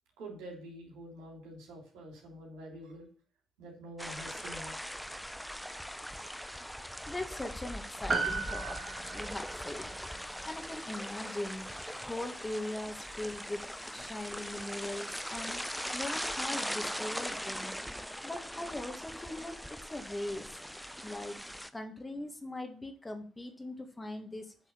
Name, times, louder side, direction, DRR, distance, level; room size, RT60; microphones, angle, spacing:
voice 1, 0.2-3.1 3.6-4.7 21.0-21.1, right 1 dB, 80° right, -1 dB, 3.3 m, -47 dB
sound 1, 4.0-21.7, equal, ahead, 0.7 m, -40 dB
voice 2, 7.1-8.8 9.0-9.9 10.5-11.7 12.0-13.6 13.9-15.7 15.9-17.7 18.2-20.5 21.0-21.4 21.7-24.5, left 1 dB, 20° left, 5 dB, 1.8 m, -40 dB
Piano, 8.1-12.7 12.9-13.0, right 4 dB, 40° right, 2.0 m, -38 dB
7.9 x 4.1 x 6.9 m, 0.42 s
hypercardioid pair, 50°, 0 cm